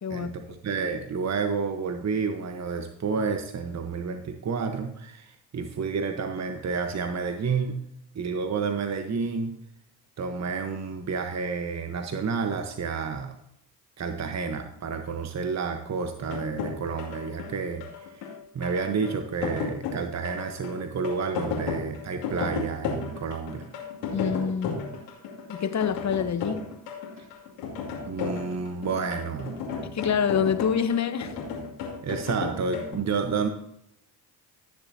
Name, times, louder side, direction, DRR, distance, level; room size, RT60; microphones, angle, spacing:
voice 1, 0.1-7.8 8.1-9.6 10.2-13.3 14.0-18.3 18.5-23.7 27.2-27.3 28.1-29.6 32.0-33.5, right 5 dB, 35° right, 1.2 m, -30 dB
sound 1, 16.2-32.9, left 5 dB, 80° left, 2.7 m, -34 dB
voice 2, 24.1-24.8 25.5-26.6 29.8-31.3, left 7 dB, 40° left, 1.1 m, -26 dB
16.5 x 7.1 x 2.8 m
hypercardioid pair, 60°, 45 cm